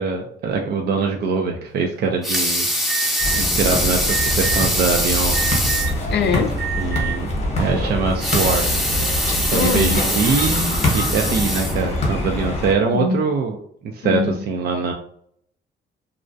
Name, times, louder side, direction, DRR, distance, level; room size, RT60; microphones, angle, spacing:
voice 1, 0.0-2.7 3.4-5.6 6.8-7.3 7.6-8.7 9.5-13.6 13.8-14.2 14.5-14.9, right 4 dB, 55° right, 2 dB, 0.4 m, -23 dB
Water tap faucet / Sink (filling or washing) / Liquid, 2.0-6.0 6.5-6.6 6.9-7.0 8.1-12.2 12.8-12.9, equal, ahead, 0.6 m, -23 dB
Alarm, 2.9-3.4 4.1-4.6 5.3-6.0 6.5-7.1, right 11 dB, 85° right, 1.1 m, -27 dB
sound 1, 3.2-12.7, left 1 dB, 35° left, 0.9 m, -24 dB
voice 2, 6.1-6.5 9.5-10.0 12.9-13.2 14.0-14.3, left 5 dB, 60° left, 6 dB, 0.4 m, -21 dB
2.3 x 2.0 x 2.5 m, 0.64 s
cardioid pair, 90°, 20 cm